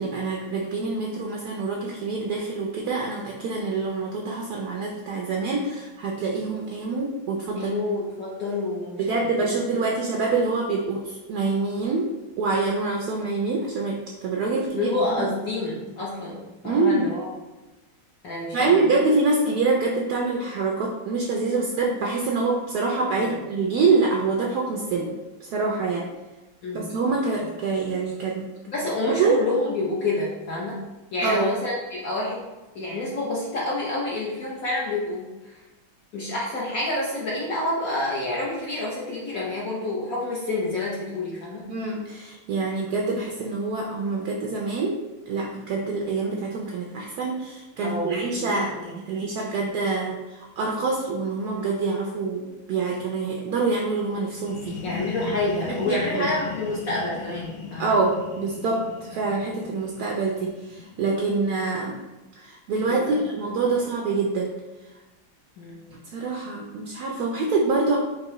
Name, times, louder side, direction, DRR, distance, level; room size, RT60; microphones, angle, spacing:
voice 1, 0.0-7.7 9.0-12.1 12.4-14.9 15.2-15.3 16.6-17.1 18.5-26.1 26.7-28.4 29.1-29.4 31.2-31.5 41.7-45.0 45.3-54.8 55.7-56.3 57.8-62.0 62.4-64.5 66.0-68.0, right 3 dB, 80° right, -1 dB, 0.9 m, -25 dB
voice 2, 7.6-9.0 9.4-9.5 14.8-17.3 18.2-18.8 23.2-23.3 26.6-26.9 28.7-30.8 31.1-32.4 32.7-35.5 36.1-41.7 47.8-49.0 54.8-57.9 63.0-63.2 65.6-65.8, left 2 dB, 65° left, -5 dB, 0.9 m, -28 dB
sound 1, 54.3-61.9, left 6 dB, 80° left, 1.4 m, -38 dB
4.6 x 2.9 x 3.0 m, 1.1 s
omnidirectional pair, 2.2 m